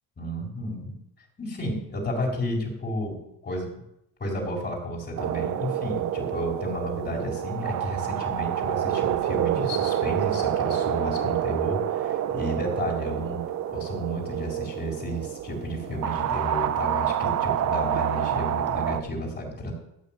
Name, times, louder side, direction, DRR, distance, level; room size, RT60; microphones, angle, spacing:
voice 1, 0.2-0.9 1.4-3.7 4.2-19.7, equal, 25° left, 0 dB, 4.3 m, -32 dB
sound 1, 5.2-19.0, right 11 dB, 45° right, 0.8 m, -28 dB
13.0 x 6.0 x 9.0 m, 0.82 s
cardioid pair, 130°, 38 cm